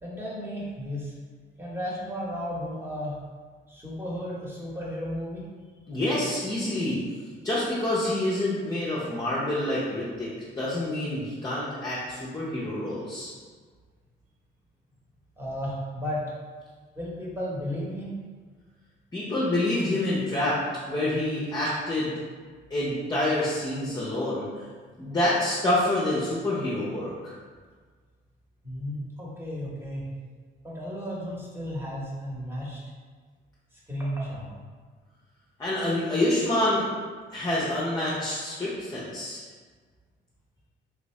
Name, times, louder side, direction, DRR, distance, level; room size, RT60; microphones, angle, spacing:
voice 1, 0.0-1.1 1.6-3.2 3.7-5.5 15.4-16.2 16.9-18.1 28.6-30.1 30.6-32.8 33.7-34.5, equal, 10° right, -6 dB, 1.1 m, -34 dB
voice 2, 5.9-7.0 7.4-10.3 10.6-13.3 19.1-20.6 20.8-22.1 22.7-24.6 25.0-27.4 35.6-36.9 37.3-39.4, left 1 dB, 20° left, -7 dB, 0.7 m, -27 dB
3.4 x 2.5 x 3.2 m, 1.5 s
cardioid pair, 90°, 20 cm